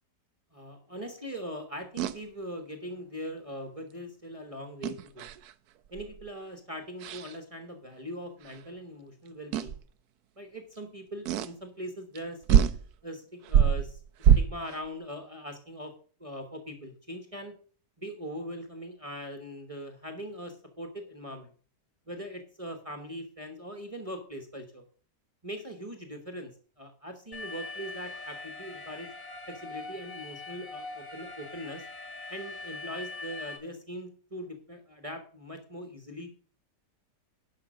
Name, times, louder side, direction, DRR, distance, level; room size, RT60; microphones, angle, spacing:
voice 1, 0.5-5.3 5.9-9.8 10.4-15.9 16.2-17.6 18.0-21.5 22.1-24.8 25.4-26.5 26.8-29.1 29.5-31.9 32.3-36.3, equal, 20° right, 6 dB, 1.2 m, -41 dB
sound 1, 2.0-2.2 4.8-5.5 6.0-6.2 7.0-7.3 8.5-8.6 9.5-9.8 11.3-11.5 12.2-12.3 12.5-12.8 13.5-14.8, right 8 dB, 70° right, 1.1 m, -24 dB
Alarm, 27.3-33.6, left 3 dB, 50° left, 2.7 m, -42 dB
11.5 x 5.4 x 6.3 m, 0.44 s
omnidirectional pair, 1.8 m